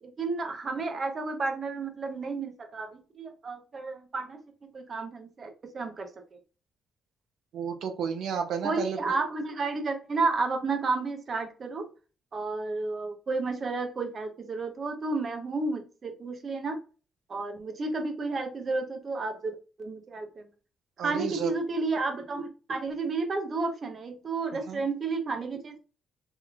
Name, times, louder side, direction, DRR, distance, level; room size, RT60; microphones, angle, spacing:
voice 1, 0.0-4.4 4.7-6.1 8.6-11.9 12.3-16.8 17.3-20.5 21.0-25.8, right 3 dB, 45° right, 6 dB, 0.9 m, -32 dB
voice 2, 7.5-9.0 21.0-21.5 24.7-24.8, right 6 dB, 75° right, 6 dB, 0.6 m, -32 dB
3.6 x 3.1 x 2.3 m, 0.35 s
cardioid pair, 90°, 0 cm